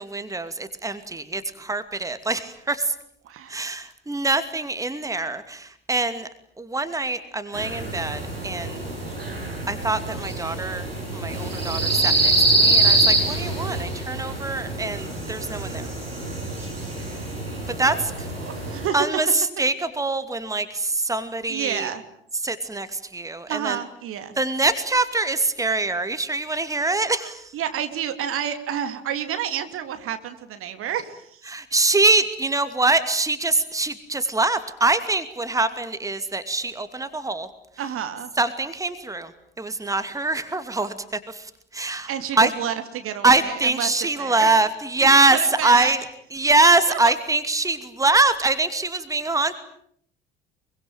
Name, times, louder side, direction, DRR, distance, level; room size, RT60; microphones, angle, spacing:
voice 1, 0.0-2.9 3.5-6.3 6.6-8.8 9.7-10.9 11.1-15.9 17.8-18.3 18.9-21.9 22.4-23.8 24.4-27.5 31.5-37.5 38.4-39.3 39.6-42.1 42.4-42.5 43.2-46.0 46.3-49.6, right 3 dB, 10° right, 11 dB, 2.6 m, -23 dB
voice 2, 3.2-3.7 13.0-13.2 17.9-18.0 18.4-18.9 21.5-22.0 23.5-24.4 27.5-31.5 37.8-38.3 42.1-43.9 44.2-44.5 45.1-45.9 46.9-47.1, right 9 dB, 50° right, 9 dB, 2.9 m, -30 dB
sound 1, 7.5-18.9, right 2 dB, 85° right, 6.5 m, -25 dB
25.5 x 24.0 x 9.1 m, 0.66 s
figure-of-eight pair, 55°, 29 cm